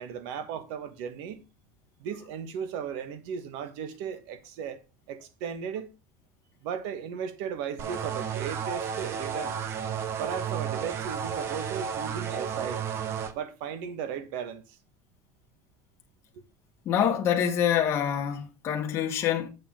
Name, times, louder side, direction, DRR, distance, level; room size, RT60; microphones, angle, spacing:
voice 1, 0.0-1.4 2.0-4.8 5.1-5.9 6.6-9.6 10.2-12.8 13.3-14.8, right 7 dB, 65° right, 1.5 m, -36 dB
sound 1, 7.8-13.3, right 7 dB, 35° right, 1.0 m, -32 dB
voice 2, 16.8-19.5, left 9 dB, 35° left, 1.5 m, -26 dB
8.1 x 6.9 x 3.7 m
cardioid pair, 160°, 8 cm